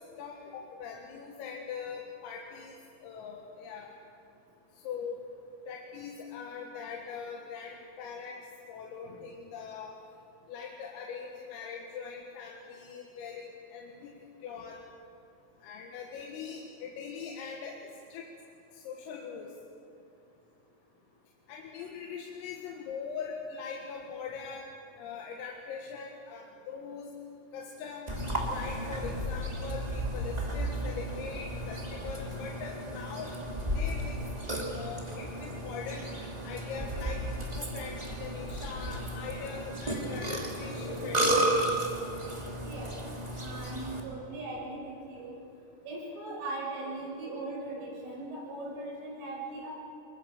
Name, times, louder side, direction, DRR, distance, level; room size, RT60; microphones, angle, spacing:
voice 1, 0.0-2.7 3.0-3.9 4.8-5.2 5.7-8.4 8.7-9.9 10.5-14.1 14.4-14.8 15.6-18.3 18.7-19.5 21.5-24.7 25.0-27.1 27.5-28.1 28.5-33.3 33.7-34.2 34.7-36.0 36.4-41.3, left 6 dB, 85° left, 1 dB, 4.2 m, -41 dB
Burping eructation, 28.1-44.0, right 1 dB, 30° right, 0.7 m, -33 dB
voice 2, 42.6-43.0 43.4-45.3 45.9-49.7, right 2 dB, 70° right, -4 dB, 9.0 m, -39 dB
26.0 x 22.0 x 7.3 m, 2.7 s
omnidirectional pair, 5.9 m